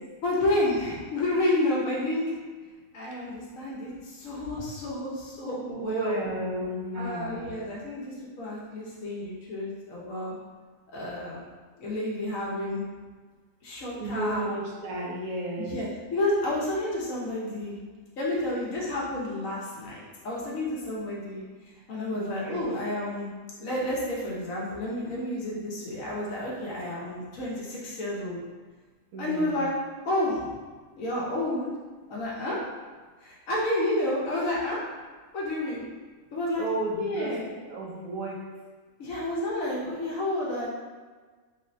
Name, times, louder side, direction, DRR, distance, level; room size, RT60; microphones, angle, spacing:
voice 1, 0.2-2.2 2.9-6.1 6.9-10.3 10.9-11.4 11.8-12.8 13.6-14.4 15.6-15.9 16.1-17.8 18.2-21.4 21.9-23.3 23.6-28.4 29.2-29.7 30.0-30.5 30.9-31.7 32.1-32.6 33.2-34.8 35.3-35.8 36.3-36.6 37.0-37.5 39.0-40.7, left 1 dB, 75° left, -5 dB, 1.3 m, -30 dB
voice 2, 5.7-7.5 13.9-15.8 22.1-22.7 29.1-29.6 36.6-37.4 37.7-38.4, right 2 dB, 90° right, -1 dB, 1.1 m, -33 dB
3.5 x 3.1 x 2.6 m, 1.4 s
omnidirectional pair, 1.4 m